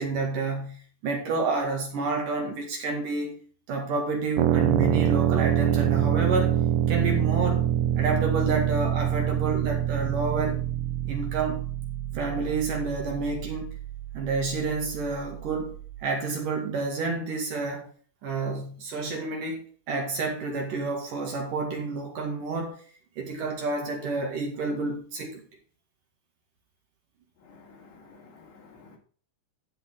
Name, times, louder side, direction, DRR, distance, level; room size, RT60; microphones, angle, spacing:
voice 1, 0.0-3.4 3.7-6.5 6.9-7.7 8.0-10.6 11.0-11.6 12.1-13.7 14.1-15.8 16.0-17.9 18.2-22.8 23.2-25.4, right 3 dB, 55° right, 3.3 m, -29 dB
sound 1, 4.4-16.0, right 10 dB, 80° right, 2.9 m, -26 dB
voice 2, 27.4-29.0, left 4 dB, 80° left, 4.9 m, -52 dB
15.5 x 5.5 x 3.8 m
omnidirectional pair, 5.1 m